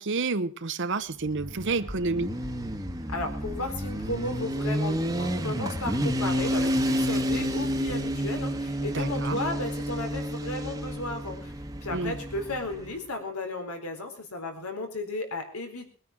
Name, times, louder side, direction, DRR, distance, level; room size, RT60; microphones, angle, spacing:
voice 1, 0.0-2.3 8.9-9.4 11.9-12.2, right 3 dB, 55° right, 0.9 m, -29 dB
Motorcycle, 1.2-12.9, equal, 15° right, 1.3 m, -30 dB
voice 2, 3.1-11.5 11.8-15.9, left 2 dB, 80° left, 4.1 m, -34 dB
21.0 x 9.7 x 6.1 m
head